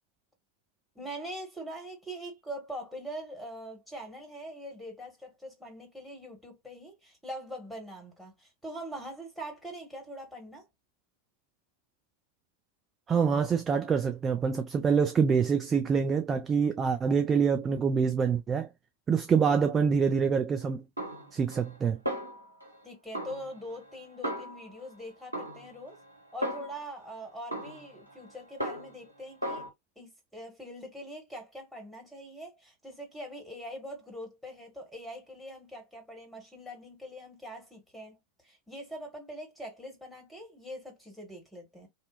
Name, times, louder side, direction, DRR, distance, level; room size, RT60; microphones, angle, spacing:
voice 1, 0.9-10.7 22.8-26.0 26.3-29.6 30.0-38.2 38.4-41.9, equal, ahead, 1.3 m, -43 dB
voice 2, 13.1-18.7 19.1-20.8 21.3-22.0, right 6 dB, 20° right, 0.3 m, -26 dB
Snare drum, 21.0-21.8 22.1-22.8 23.1-24.9 25.3-27.0 27.5-29.1 29.4-29.7, equal, 85° right, 0.8 m, -37 dB
2.7 x 2.1 x 2.3 m
figure-of-eight pair, 90°, 0 cm